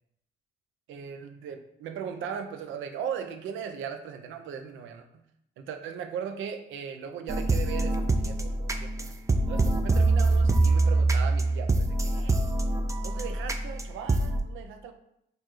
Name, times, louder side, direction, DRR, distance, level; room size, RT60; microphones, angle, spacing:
voice 1, 0.9-5.2 5.6-9.1 9.5-12.4 13.0-14.9, right 7 dB, 80° right, 7 dB, 0.5 m, -38 dB
sound 1, 7.3-14.4, right 2 dB, 15° right, 0.3 m, -25 dB
4.5 x 2.5 x 3.0 m, 0.77 s
cardioid pair, 90°, 20 cm